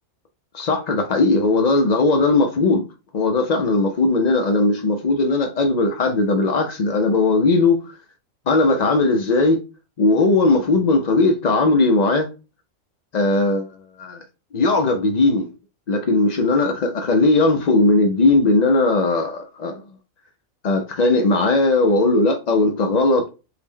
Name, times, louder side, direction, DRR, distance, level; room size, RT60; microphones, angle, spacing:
voice 1, 0.5-2.9 3.1-7.9 8.5-9.6 10.0-12.3 13.1-13.7 14.0-14.2 14.5-15.5 15.9-19.8 20.6-23.3, left 2 dB, 85° left, 0.3 m, -18 dB
4.5 x 2.1 x 3.6 m
omnidirectional pair, 1.5 m